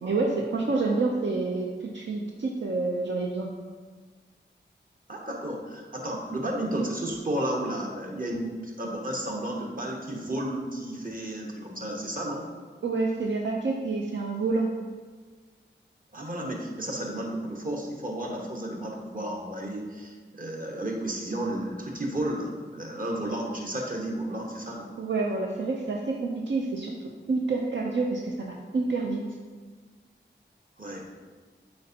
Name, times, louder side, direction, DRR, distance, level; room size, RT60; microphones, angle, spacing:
voice 1, 0.0-3.5 12.8-14.7 25.0-26.9 27.3-29.2, right 3 dB, 70° right, -1 dB, 0.5 m, -28 dB
voice 2, 5.1-12.5 16.1-24.9 30.8-31.0, right 1 dB, 45° right, -1 dB, 1.2 m, -32 dB
7.8 x 4.3 x 2.8 m, 1.5 s
cardioid pair, 40°, 20 cm